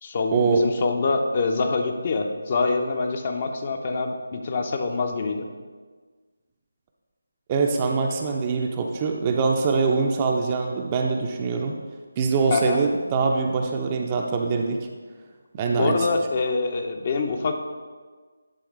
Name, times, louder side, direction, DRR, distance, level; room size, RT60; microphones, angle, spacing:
voice 1, 0.0-5.5 12.5-12.8 15.7-17.6, left 3 dB, 35° left, 4 dB, 0.7 m, -25 dB
voice 2, 7.5-11.8 12.2-14.8 15.5-16.1, right 4 dB, 20° right, 2 dB, 0.5 m, -23 dB
10.5 x 3.5 x 4.6 m, 1.4 s
figure-of-eight pair, 155°, 0 cm